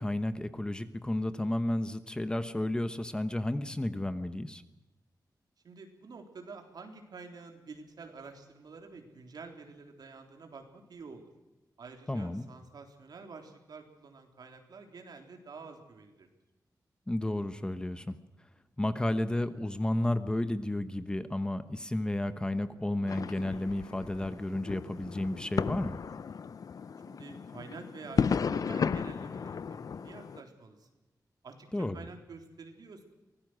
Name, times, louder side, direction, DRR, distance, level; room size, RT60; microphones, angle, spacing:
voice 1, 0.0-4.6 12.1-12.5 17.1-18.1 18.8-26.0 31.7-32.0, left 1 dB, 10° left, 11 dB, 1.0 m, -32 dB
voice 2, 5.6-11.3 11.8-16.3 27.1-30.9 31.4-31.7 31.9-33.0, right 4 dB, 70° right, 4 dB, 3.7 m, -48 dB
sound 1, 23.1-30.4, left 6 dB, 60° left, 0.7 m, -34 dB
24.5 x 18.5 x 6.3 m, 1.0 s
wide cardioid pair, 155°, 7 cm